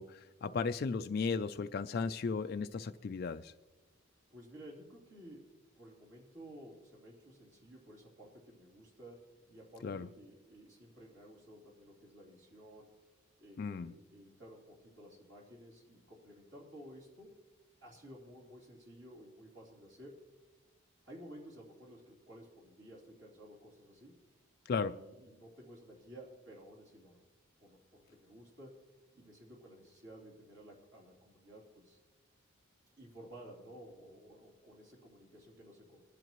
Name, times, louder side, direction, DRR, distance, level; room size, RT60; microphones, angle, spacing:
voice 1, 0.0-3.5 9.8-10.1 13.6-13.9 24.7-25.0, left 5 dB, 45° left, 9 dB, 0.3 m, -35 dB
voice 2, 4.3-5.5 5.8-12.9 13.4-17.3 17.8-20.2 21.0-24.2 24.8-27.2 27.6-28.8 29.1-32.0 33.0-36.0, equal, 55° right, -3 dB, 3.2 m, -54 dB
22.5 x 10.5 x 3.0 m, 1.2 s
head